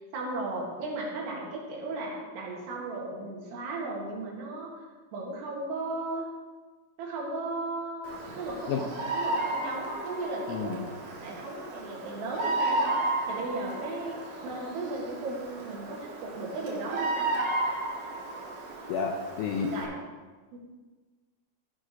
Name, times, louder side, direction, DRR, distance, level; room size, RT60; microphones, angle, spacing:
voice 1, 0.0-4.8 5.1-6.3 7.0-10.8 11.2-12.9 13.3-17.3 19.7-19.9 20.5-20.6, right 2 dB, 75° right, -3 dB, 3.8 m, -36 dB
Bird vocalization bird call bird song, 8.0-19.8, right 2 dB, 60° right, 2.8 m, -33 dB
voice 2, 10.5-10.9 18.9-19.7, left 6 dB, 85° left, 2 dB, 2.1 m, -30 dB
13.0 x 5.0 x 5.3 m, 1.4 s
omnidirectional pair, 5.1 m